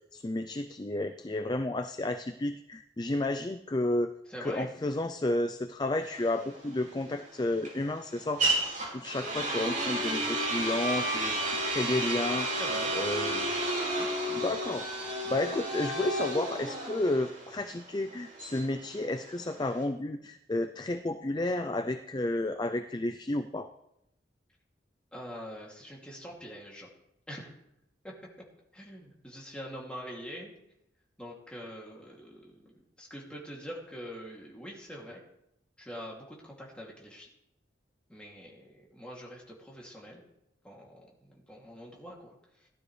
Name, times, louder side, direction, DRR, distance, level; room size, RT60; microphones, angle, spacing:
voice 1, 0.1-4.1 4.4-8.6 8.9-12.5 12.9-13.6 14.3-23.7, left 1 dB, 25° left, 8 dB, 0.4 m, -32 dB
voice 2, 4.3-4.7 12.6-12.9 25.1-26.9 27.3-27.5 28.0-28.1 28.7-30.5 31.2-32.7 33.0-35.2 35.8-37.3 38.1-40.2 40.6-42.7, equal, 5° left, -3 dB, 2.7 m, -44 dB
sound 1, 6.0-19.8, right 1 dB, 45° right, 5.5 m, -32 dB
17.0 x 12.0 x 3.3 m, 0.82 s
head